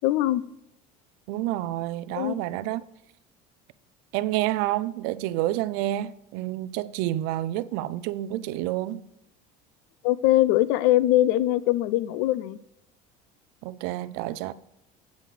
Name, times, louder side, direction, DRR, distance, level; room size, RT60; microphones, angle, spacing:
voice 1, 0.0-0.4 2.1-2.4 10.0-12.6, left 15 dB, 75° left, 0.4 m, -22 dB
voice 2, 1.3-2.9 4.1-9.0 13.6-14.5, right 15 dB, 70° right, 0.4 m, -29 dB
8.3 x 7.7 x 3.3 m
cardioid pair, 165°, 17 cm